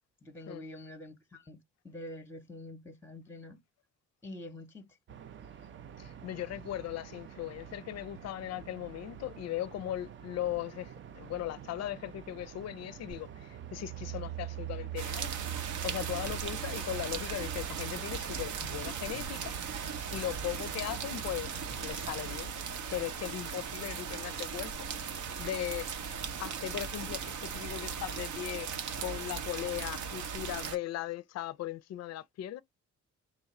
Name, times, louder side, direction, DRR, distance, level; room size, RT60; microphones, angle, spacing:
voice 1, 0.2-3.6 4.2-5.0, left 1 dB, 10° left, 0.7 m, -46 dB
sound 1, 5.1-22.4, right 8 dB, 40° right, 0.4 m, -49 dB
voice 2, 6.0-15.3 15.8-19.5 19.9-21.5 21.8-22.6 22.9-24.7 25.4-25.9 26.4-28.7 29.0-32.6, left 13 dB, 60° left, 0.4 m, -38 dB
sound 2, 13.1-22.7, right 14 dB, 90° right, 1.8 m, -44 dB
sound 3, 15.0-30.8, right 6 dB, 75° right, 0.8 m, -38 dB
3.1 x 2.4 x 4.2 m
cardioid pair, 90°, 30 cm